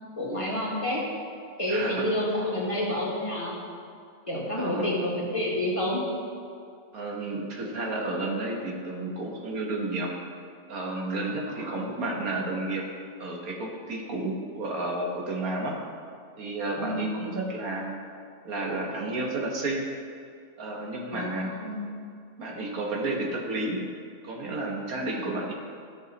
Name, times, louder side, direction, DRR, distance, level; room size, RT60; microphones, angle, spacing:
voice 1, 0.2-1.0 1.6-3.6 4.3-6.0 11.5-11.9 16.8-17.1 21.1-21.8, left 1 dB, 25° left, -5 dB, 1.6 m, -29 dB
voice 2, 1.7-2.1 4.6-4.9 6.9-10.1 10.7-12.8 13.2-15.8 16.4-18.0 18.5-19.8 20.6-21.5 22.4-23.8 24.2-25.5, right 2 dB, 85° right, 0 dB, 1.7 m, -31 dB
13.0 x 6.3 x 4.0 m, 2.3 s
omnidirectional pair, 1.5 m